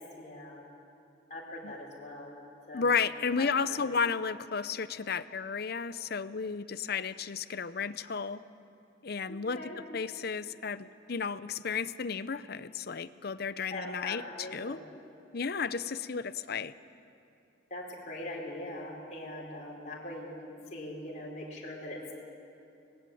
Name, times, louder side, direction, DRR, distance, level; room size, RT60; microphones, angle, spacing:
voice 1, 0.2-0.6 1.3-2.3 2.7-2.9 3.4-4.0 9.3-9.8 13.7-14.8 17.7-22.1, left 1 dB, 40° left, -4 dB, 4.5 m, -41 dB
voice 2, 2.7-8.4 9.0-9.6 9.9-14.8 15.3-16.7, left 5 dB, 55° left, 14 dB, 0.7 m, -33 dB
25.0 x 20.0 x 8.6 m, 2.7 s
head